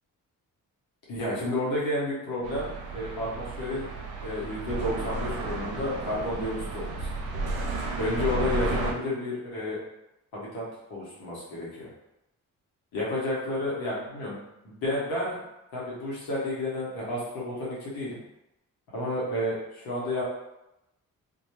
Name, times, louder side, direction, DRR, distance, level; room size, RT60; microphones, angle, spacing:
voice 1, 1.1-2.7 2.9-3.9 4.2-7.1 8.0-9.8 10.3-10.6 10.9-11.9 12.9-15.4 15.7-18.2 18.9-20.2, left 1 dB, 90° left, -6 dB, 1.0 m, -31 dB
sound 1, 2.4-8.9, right 3 dB, 85° right, 0.5 m, -33 dB
2.3 x 2.2 x 2.9 m, 0.90 s
supercardioid pair, 50°, 36 cm